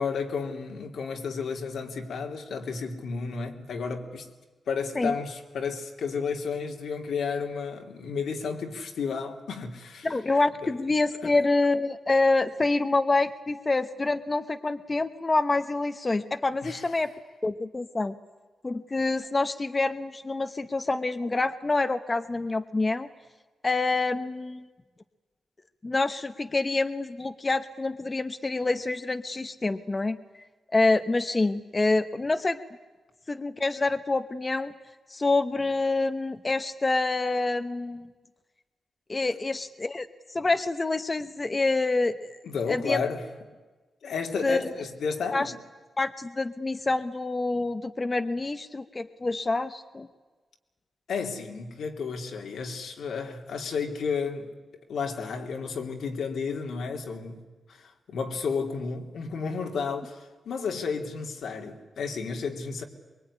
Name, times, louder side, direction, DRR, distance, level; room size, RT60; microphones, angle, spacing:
voice 1, 0.0-4.3 4.7-10.1 10.6-10.7 11.2-11.4 16.6-16.8 42.4-43.2 44.0-45.5 51.1-54.5 54.9-62.8, left 5 dB, 85° left, 3.2 m, -32 dB
voice 2, 10.0-17.1 17.4-18.1 18.6-23.1 23.6-24.6 25.8-30.2 30.7-32.6 33.3-34.7 35.1-38.1 39.1-40.1 40.3-42.4 42.7-43.0 44.4-44.7 45.3-45.5 46.0-50.1, left 3 dB, 25° left, 1.0 m, -27 dB
23.5 x 23.5 x 10.0 m
wide cardioid pair, 140°, 0 cm